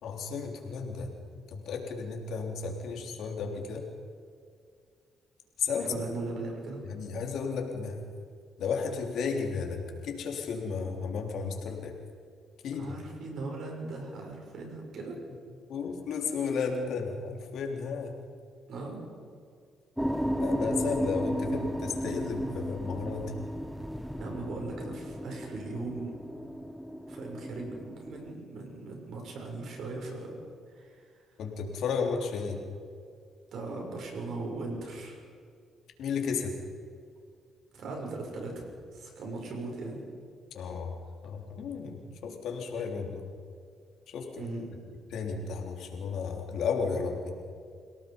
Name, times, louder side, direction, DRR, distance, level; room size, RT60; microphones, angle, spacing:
voice 1, 0.0-3.9 5.6-6.0 6.9-8.0 8.6-11.9 12.6-12.9 15.7-18.1 20.4-23.4 31.4-32.6 36.0-36.6 40.5-41.0 41.2-43.2 44.1-44.5 45.1-47.3, left 5 dB, 75° left, 2 dB, 3.5 m, -33 dB
voice 2, 5.8-6.8 12.8-15.2 18.7-19.0 24.2-26.1 27.1-30.3 30.7-31.0 33.5-35.2 37.7-40.0 44.4-44.6, right 3 dB, 70° right, 1 dB, 6.9 m, -38 dB
sound 1, 20.0-28.3, equal, ahead, 1.2 m, -34 dB
29.0 x 17.5 x 5.4 m, 2.2 s
cardioid pair, 90°, 0 cm